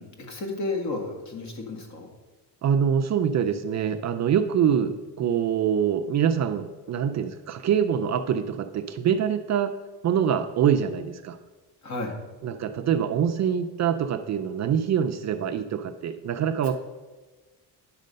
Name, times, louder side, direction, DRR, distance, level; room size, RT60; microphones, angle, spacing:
voice 1, 0.0-2.1 4.8-5.0 11.8-12.2 16.6-16.7, left 2 dB, 45° left, 2 dB, 1.9 m, -33 dB
voice 2, 2.6-9.8 10.0-11.4 12.4-16.7, right 8 dB, 45° right, 7 dB, 0.5 m, -25 dB
9.8 x 6.6 x 5.2 m, 1.3 s
cardioid pair, 155°, 39 cm